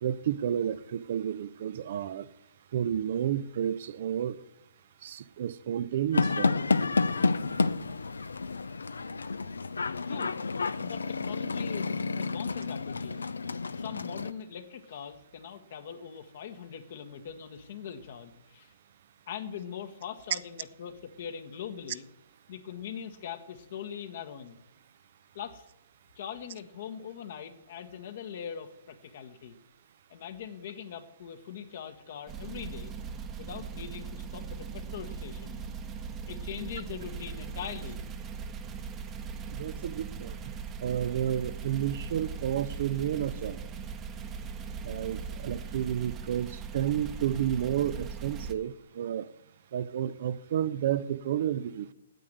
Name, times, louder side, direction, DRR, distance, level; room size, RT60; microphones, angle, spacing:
voice 1, 0.0-2.3 2.7-4.4 5.0-6.7 39.5-40.5 40.8-43.6 44.8-49.3 49.7-51.9, right 10 dB, 55° right, 0.6 m, -31 dB
sound 1, 6.1-14.3, left 4 dB, 80° left, 0.5 m, -30 dB
voice 2, 10.0-10.4 10.8-13.3 13.7-18.7 19.3-22.1 22.5-24.6 25.3-25.7 26.1-29.6 30.1-32.9 33.4-35.6 36.3-38.0, left 8 dB, 55° left, 1.3 m, -41 dB
sound 2, 32.3-48.5, right 6 dB, 20° right, 1.0 m, -39 dB
9.2 x 8.5 x 7.9 m
figure-of-eight pair, 125°, 0 cm